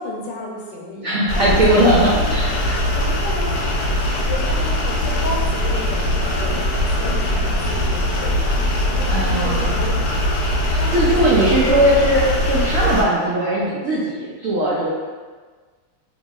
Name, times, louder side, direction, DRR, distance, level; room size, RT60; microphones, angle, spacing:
voice 1, 0.0-1.1 1.3-2.4 2.9-3.6 4.3-8.5 8.8-10.0 10.8-11.7, left 3 dB, 90° left, -2 dB, 1.3 m, -32 dB
voice 2, 1.0-2.8 9.1-9.7 10.7-14.9, right 1 dB, 90° right, -7 dB, 0.7 m, -19 dB
sound 1, 1.3-13.0, left 1 dB, 75° left, 1.1 m, -21 dB
2.9 x 2.8 x 2.3 m, 1.4 s
omnidirectional pair, 2.0 m